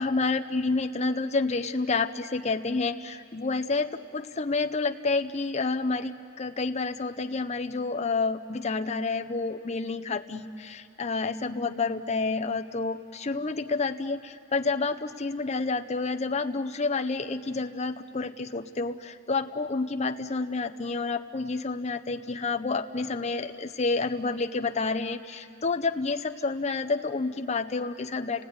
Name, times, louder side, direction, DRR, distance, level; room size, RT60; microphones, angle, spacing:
voice 1, 0.0-28.5, left 3 dB, 35° left, 6 dB, 0.7 m, -29 dB
30.0 x 17.5 x 9.5 m, 2.6 s
head